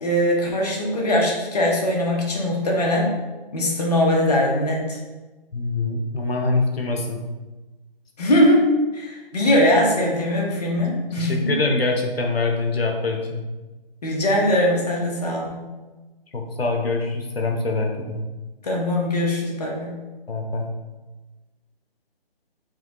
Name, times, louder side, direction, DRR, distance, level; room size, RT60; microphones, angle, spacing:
voice 1, 0.0-3.1 3.5-5.0 8.2-8.7 8.9-11.5 14.0-15.6 18.6-20.0, left 1 dB, 40° left, -1 dB, 0.9 m, -21 dB
voice 2, 5.5-7.2 11.2-13.4 16.3-18.2 20.3-20.7, left 3 dB, 85° left, 2 dB, 0.8 m, -24 dB
4.8 x 3.1 x 2.9 m, 1.2 s
figure-of-eight pair, 165°, 30 cm